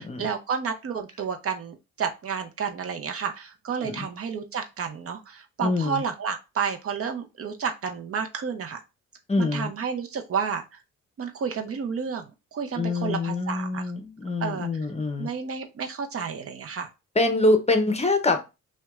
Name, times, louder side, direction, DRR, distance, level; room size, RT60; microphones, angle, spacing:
voice 1, 0.0-8.8 9.4-10.8 11.2-13.9 14.4-14.7 15.2-16.9, right 6 dB, 50° right, 0.7 m, -31 dB
voice 2, 5.6-6.0 9.3-9.7 12.8-15.3 17.2-18.4, left 2 dB, 20° left, 0.7 m, -25 dB
5.6 x 2.3 x 2.4 m
cardioid pair, 90°, 30 cm